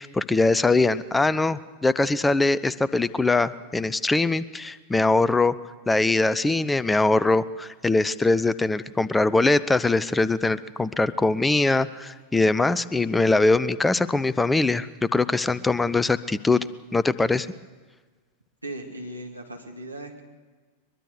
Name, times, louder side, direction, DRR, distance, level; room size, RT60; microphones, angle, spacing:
voice 1, 0.0-5.5 5.9-16.6 16.9-17.5, left 3 dB, 10° left, 18 dB, 0.6 m, -22 dB
voice 2, 18.6-20.2, right 1 dB, 85° right, 1 dB, 2.5 m, -37 dB
22.5 x 22.5 x 6.7 m, 1.4 s
figure-of-eight pair, 90°, 0 cm